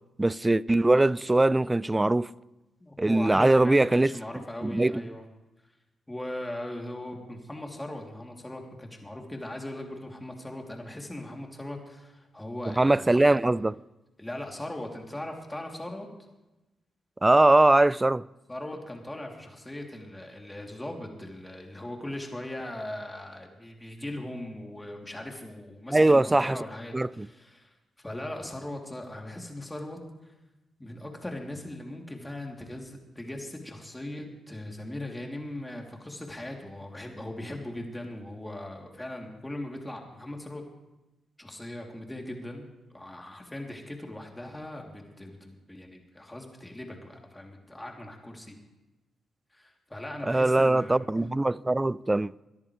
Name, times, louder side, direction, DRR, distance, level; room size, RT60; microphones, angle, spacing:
voice 1, 0.2-2.3 3.0-4.1 4.6-4.9 12.7-13.8 17.2-18.2 25.9-26.6 26.9-27.3 50.3-52.3, right 2 dB, 20° right, 0.4 m, -21 dB
voice 2, 2.8-5.3 5.6-5.7 6.1-13.4 14.2-16.1 18.5-30.3 30.8-40.7 41.4-48.6 49.5-51.1, left 1 dB, 15° left, 3.2 m, -39 dB
22.5 x 10.5 x 3.3 m
hypercardioid pair, 45°, 0 cm